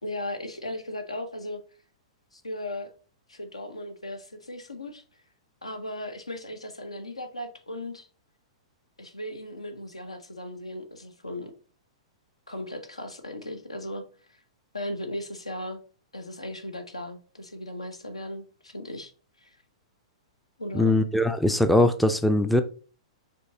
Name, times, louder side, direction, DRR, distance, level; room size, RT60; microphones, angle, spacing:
voice 1, 0.0-1.6 2.3-2.9 3.3-5.0 5.6-8.1 9.0-11.5 12.5-14.4 14.7-15.8 16.1-19.1 19.4-19.6 20.6-21.0, left 1 dB, 80° left, 7 dB, 0.8 m, -37 dB
voice 2, 20.7-22.6, left 1 dB, ahead, 10 dB, 0.3 m, -21 dB
5.2 x 3.7 x 2.7 m, 0.39 s
figure-of-eight pair, 105°, 3 cm